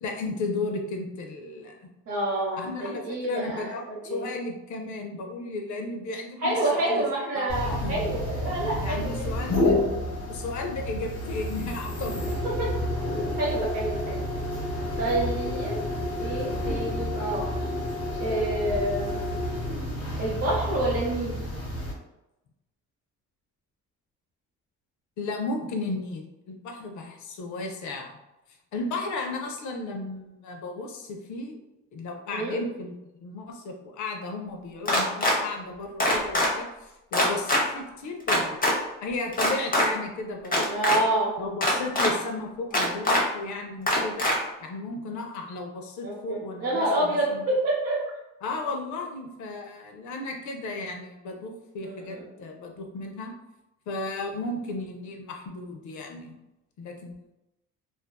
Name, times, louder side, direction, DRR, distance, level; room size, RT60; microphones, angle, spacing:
voice 1, 0.0-1.9 2.6-7.0 7.4-8.0 8.8-9.9 10.3-12.3 14.7-14.8 25.2-28.1 28.7-31.6 31.9-38.6 39.0-41.0 41.4-44.3 44.6-47.4 48.4-53.3 53.9-56.4 56.8-57.3, left 2 dB, 75° left, 3 dB, 0.5 m, -34 dB
voice 2, 2.1-4.3 6.4-9.1 12.6-12.7 13.4-14.2 15.0-15.8 16.1-17.5 18.2-19.2 20.2-21.3 32.3-32.6 40.7-41.3 46.0-48.0 51.8-52.3, right 1 dB, 50° right, -7 dB, 0.8 m, -28 dB
sound 1, 7.5-21.9, left 1 dB, 55° left, 0.9 m, -30 dB
sound 2, 34.9-35.4 36.0-36.5 37.1-37.6 38.3-38.7 39.3-39.9 40.4-41.0 41.6-42.1 42.7-43.2 43.9-44.3, left 1 dB, 30° left, 0.7 m, -22 dB
2.5 x 2.2 x 2.2 m, 0.93 s
cardioid pair, 90°, 30 cm